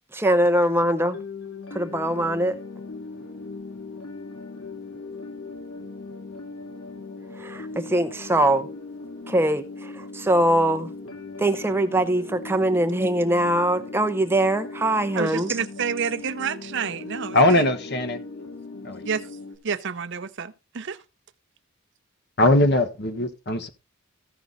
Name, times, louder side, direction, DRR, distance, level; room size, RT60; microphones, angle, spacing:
voice 1, 0.1-1.2 1.7-2.6 7.4-8.7 9.3-10.9 11.4-15.5, right 1 dB, 10° right, 0.6 m, -22 dB
sound 1, 1.1-19.6, left 3 dB, 85° left, 2.7 m, -39 dB
voice 2, 15.1-17.7 19.0-19.3 19.6-21.0, right 6 dB, 55° right, 0.6 m, -29 dB
voice 3, 17.3-18.2 18.8-19.0 22.4-23.7, left 1 dB, 50° left, 1.5 m, -20 dB
15.0 x 5.9 x 4.0 m
head